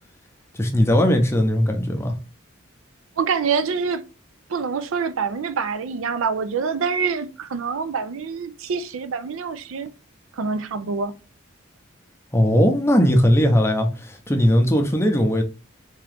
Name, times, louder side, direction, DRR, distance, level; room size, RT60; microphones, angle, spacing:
voice 1, 0.5-2.1 12.3-15.4, equal, 10° left, 0.6 m, -18 dB
voice 2, 3.2-4.0 4.5-9.9 10.3-11.1, right 5 dB, 75° right, 0.4 m, -26 dB
3.6 x 2.9 x 3.3 m
head